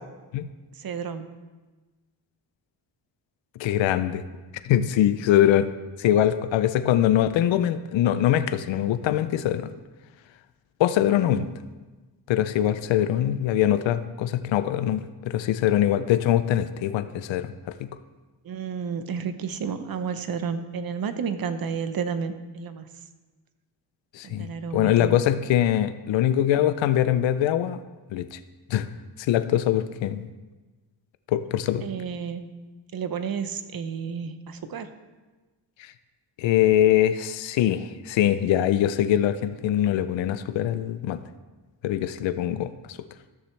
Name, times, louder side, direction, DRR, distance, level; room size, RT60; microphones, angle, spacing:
voice 1, 0.7-1.3 11.3-11.5 18.4-22.9 24.2-25.2 31.8-32.5 32.9-34.9, right 6 dB, 50° right, 10 dB, 0.8 m, -31 dB
voice 2, 3.6-4.2 4.6-5.7 6.0-9.7 10.8-11.5 12.3-17.5 17.8-17.9 24.1-24.5 24.7-27.8 28.1-28.4 28.7-28.9 29.2-30.3 31.3-31.9 35.8-35.9 36.4-41.2 41.8-43.0, left 11 dB, 85° left, 12 dB, 0.6 m, -23 dB
13.5 x 6.7 x 3.2 m, 1.2 s
cardioid pair, 75°, 44 cm